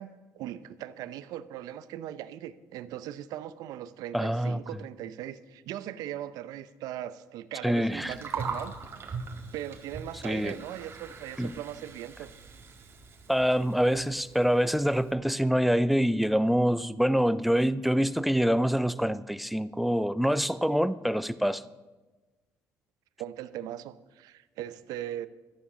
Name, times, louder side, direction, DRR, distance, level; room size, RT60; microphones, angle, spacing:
voice 1, 0.0-8.8 9.5-12.3 23.2-25.3, right 12 dB, 90° right, 0.7 m, -39 dB
voice 2, 4.1-4.6 7.6-8.1 10.2-10.5 11.4-11.5 13.3-21.6, equal, ahead, 0.5 m, -25 dB
Gurgling, 7.9-15.1, right 4 dB, 40° right, 1.9 m, -41 dB
14.0 x 10.0 x 6.2 m
cardioid pair, 115°, 6 cm